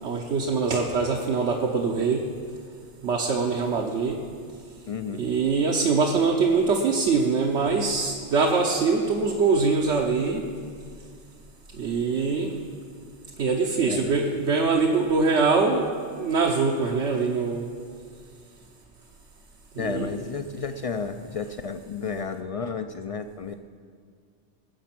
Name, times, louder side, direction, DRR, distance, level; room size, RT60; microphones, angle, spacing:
voice 1, 0.0-2.3 3.0-4.2 5.1-10.4 11.8-12.5 13.4-15.9 16.2-17.7 19.8-20.1, right 4 dB, 80° right, 0 dB, 1.2 m, -23 dB
voice 2, 4.9-5.3 13.9-14.1 19.8-23.5, left 5 dB, 65° left, 8 dB, 0.3 m, -32 dB
19.5 x 7.2 x 6.0 m, 2.1 s
omnidirectional pair, 1.2 m